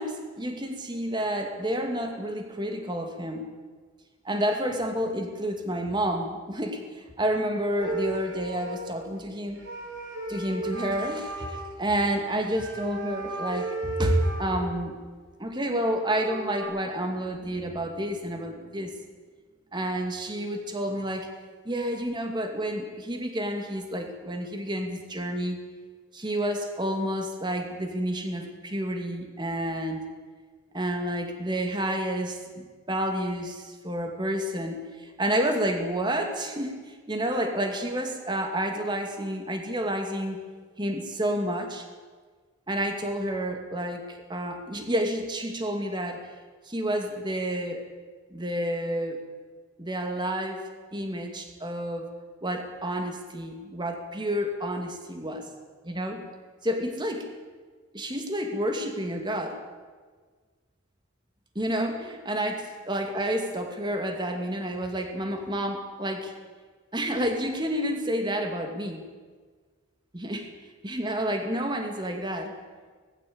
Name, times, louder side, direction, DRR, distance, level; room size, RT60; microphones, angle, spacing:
voice 1, 0.0-3.5 4.2-9.6 10.3-15.0 15.4-19.0 19.7-21.3 21.6-25.6 26.1-30.1 30.7-40.4 40.8-41.9 42.7-46.3 46.7-47.8 48.3-49.2 49.8-50.6 50.9-52.1 52.4-55.5 55.8-56.3 56.6-57.3 57.9-59.6 61.5-66.3 66.9-69.1 70.1-70.5 70.8-72.5, equal, 20° right, 4 dB, 2.4 m, -30 dB
sound 1, 7.8-9.1 9.5-11.7 12.5-15.0 15.7-15.8 16.0-16.6, right 3 dB, 65° right, 6.7 m, -35 dB
20.0 x 15.0 x 8.7 m, 1.5 s
head